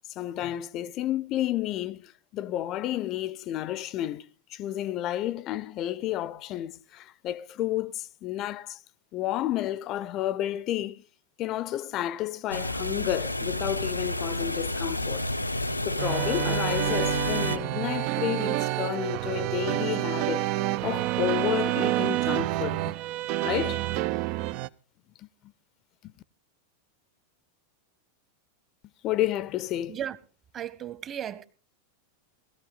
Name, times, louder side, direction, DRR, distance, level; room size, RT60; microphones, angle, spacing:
voice 1, 0.1-8.8 9.1-11.0 11.4-15.3 15.8-20.5 20.8-22.9 23.4-23.9 26.0-26.1 29.0-30.0, left 13 dB, 35° left, 0.7 m, -31 dB
sound 1, 12.5-17.6, left 1 dB, 85° left, 0.9 m, -30 dB
sound 2, 16.0-24.7, right 16 dB, 45° right, 0.6 m, -28 dB
voice 2, 30.5-31.5, right 10 dB, 30° right, 1.5 m, -35 dB
19.5 x 14.5 x 4.1 m
figure-of-eight pair, 90°, 0 cm